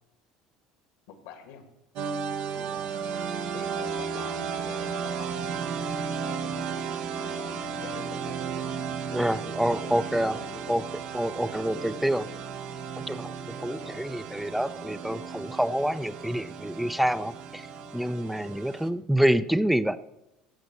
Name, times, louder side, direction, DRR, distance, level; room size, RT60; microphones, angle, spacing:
voice 1, 1.1-1.7 2.5-5.5 6.2-9.2 9.6-10.9 13.6-14.1, left 6 dB, 80° left, 7 dB, 2.1 m, -46 dB
sound 1, 2.0-18.9, right 6 dB, 65° right, 1.1 m, -34 dB
voice 2, 9.1-10.4 10.7-10.8 11.1-12.3 13.1-17.7 17.9-20.0, equal, 5° right, 12 dB, 0.5 m, -27 dB
15.5 x 5.2 x 8.2 m, 0.91 s
supercardioid pair, 90°, 2 cm